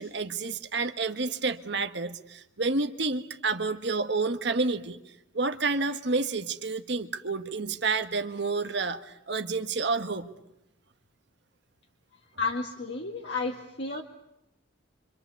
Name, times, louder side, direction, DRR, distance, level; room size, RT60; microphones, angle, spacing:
voice 1, 0.0-10.3, right 3 dB, 55° right, 8 dB, 1.3 m, -29 dB
voice 2, 12.4-14.0, left 4 dB, 60° left, 1 dB, 2.0 m, -32 dB
27.0 x 25.5 x 8.2 m, 0.87 s
head